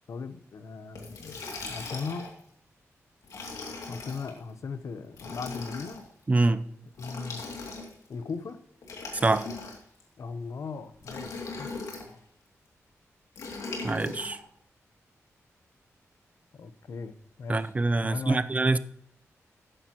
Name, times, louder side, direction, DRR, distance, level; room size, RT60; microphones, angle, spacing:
voice 1, 0.1-1.3 1.7-2.3 3.9-6.0 7.0-7.4 8.1-8.6 10.2-11.7 16.5-17.7 18.0-18.5, left 4 dB, 65° left, 0.8 m, -38 dB
Liquid, 1.0-2.4 3.2-4.3 5.1-6.0 6.9-8.1 8.8-10.0 11.0-12.1 13.4-14.4, left 3 dB, 85° left, 2.4 m, -39 dB
voice 2, 6.3-6.6 9.2-9.5 13.8-14.4 17.5-18.8, right 2 dB, 25° right, 0.5 m, -24 dB
12.0 x 9.9 x 2.9 m
wide cardioid pair, 100°, 5 cm